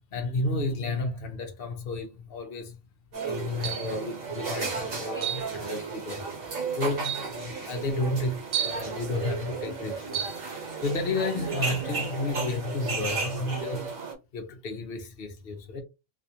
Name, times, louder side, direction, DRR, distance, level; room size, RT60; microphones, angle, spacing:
voice 1, 0.1-2.8 3.2-6.2 6.8-10.3 10.8-13.9 14.3-15.8, left 2 dB, 50° left, 1.0 m, -32 dB
sound 1, 3.1-14.1, right 4 dB, 85° right, 1.7 m, -34 dB
sound 2, 3.6-4.0 5.2-5.5 6.4-6.5 7.0-7.3 8.5-8.9 10.1-10.4, right 10 dB, 65° right, 0.8 m, -31 dB
3.4 x 2.5 x 2.8 m
omnidirectional pair, 1.4 m